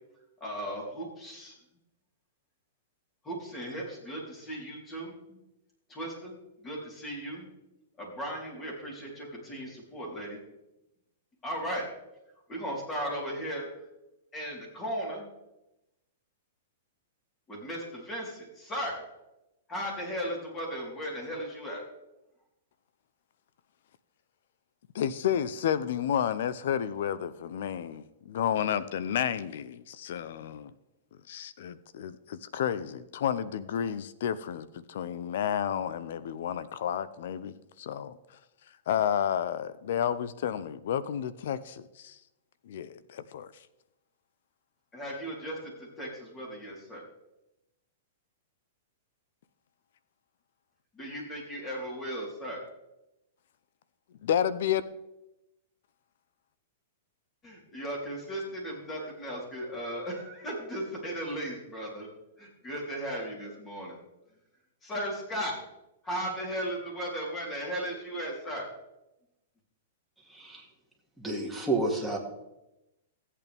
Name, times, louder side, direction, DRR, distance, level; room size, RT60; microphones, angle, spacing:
voice 1, 0.4-1.5 3.2-5.4 5.9-7.5 8.0-10.4 11.4-11.9 12.5-13.7 14.3-15.3 17.5-19.0 19.7-21.8 44.9-47.0 50.9-52.6 57.4-62.1 62.6-64.0 64.8-65.6 66.0-68.7, equal, 20° left, 4.0 m, -36 dB
voice 2, 24.9-30.7 31.3-38.2 38.9-42.2 42.7-43.5 54.2-54.8, left 9 dB, 65° left, 0.7 m, -31 dB
voice 3, 70.3-70.6 71.2-72.2, right 2 dB, ahead, 2.3 m, -30 dB
15.0 x 8.4 x 3.5 m
hypercardioid pair, 135°, 0 cm